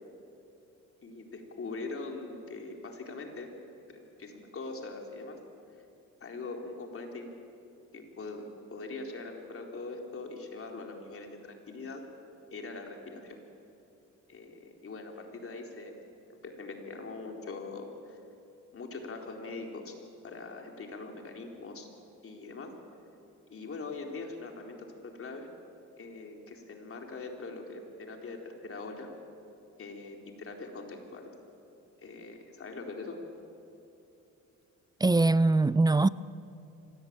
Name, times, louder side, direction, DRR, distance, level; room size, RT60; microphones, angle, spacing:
voice 1, 1.0-3.5 3.9-5.4 6.2-7.3 7.9-8.4 8.7-12.0 12.5-13.4 14.3-16.0 16.3-18.2 18.7-19.9 20.2-21.9 22.2-22.7 23.5-25.5 26.0-29.1 29.8-31.4 32.0-33.2, left 3 dB, 45° left, 4.0 m, -42 dB
voice 2, 35.0-36.1, right 2 dB, 15° right, 0.5 m, -22 dB
25.0 x 18.0 x 8.9 m
cardioid pair, 90°, 30 cm